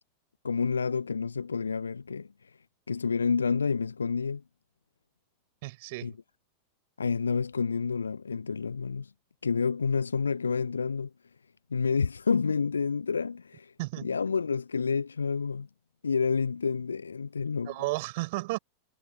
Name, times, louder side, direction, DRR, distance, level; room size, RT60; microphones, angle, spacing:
voice 1, 0.4-2.6 2.9-4.4 6.0-6.1 7.0-9.1 9.4-11.1 11.7-13.7 14.0-15.7 16.0-17.7, left 5 dB, 75° left, 0.8 m, -29 dB
voice 2, 5.6-6.2 13.8-14.1 17.7-18.6, right 22 dB, 50° right, 7.4 m, -33 dB
figure-of-eight pair, 90°, 0 cm